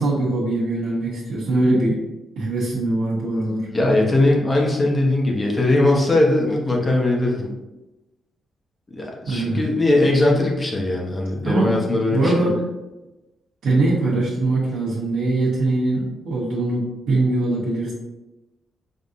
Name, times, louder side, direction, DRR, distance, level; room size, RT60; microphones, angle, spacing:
voice 1, 0.0-2.0 2.4-3.7 9.3-9.6 11.4-11.7 12.1-12.6 13.6-17.9, right 2 dB, 75° right, -9 dB, 1.1 m, -22 dB
voice 2, 3.7-7.5 8.9-12.5, left 2 dB, 20° left, -1 dB, 0.8 m, -20 dB
5.4 x 2.8 x 2.5 m, 1.0 s
cardioid pair, 150°, 0 cm